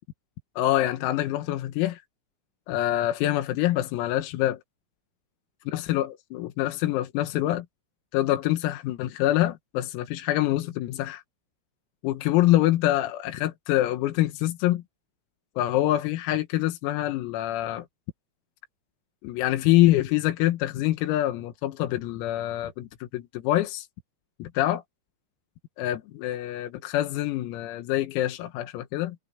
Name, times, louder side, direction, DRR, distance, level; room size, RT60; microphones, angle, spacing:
voice 1, 0.6-2.0 2.7-4.6 5.7-7.7 8.1-11.2 12.0-14.8 15.6-17.9 19.2-23.9 24.4-24.8 25.8-29.2, left 14 dB, 85° left, 4.3 m, -25 dB
omnidirectional pair, 6.0 m